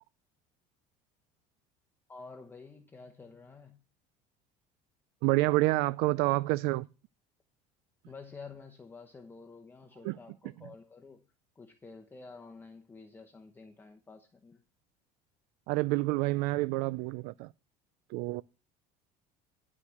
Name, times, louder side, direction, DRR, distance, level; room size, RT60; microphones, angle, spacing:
voice 1, 2.1-3.8 8.1-11.2 11.6-14.6, left 4 dB, 15° left, 0.9 m, -50 dB
voice 2, 5.2-6.9 10.0-10.2 15.7-17.5 18.1-18.4, right 20 dB, 70° right, 0.4 m, -28 dB
11.5 x 4.9 x 7.1 m
cardioid pair, 135°, 16 cm